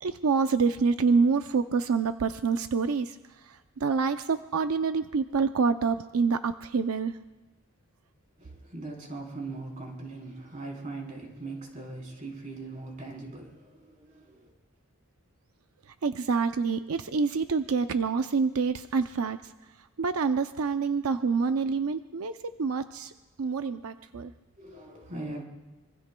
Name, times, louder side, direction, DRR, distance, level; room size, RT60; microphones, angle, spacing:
voice 1, 0.0-7.2 15.9-19.5 19.8-23.1 23.4-24.3, right 5 dB, 90° right, 9 dB, 0.5 m, -27 dB
voice 2, 8.4-14.5 24.6-25.4, right 2 dB, 35° right, -1 dB, 3.7 m, -40 dB
25.5 x 23.5 x 2.3 m, 1.1 s
head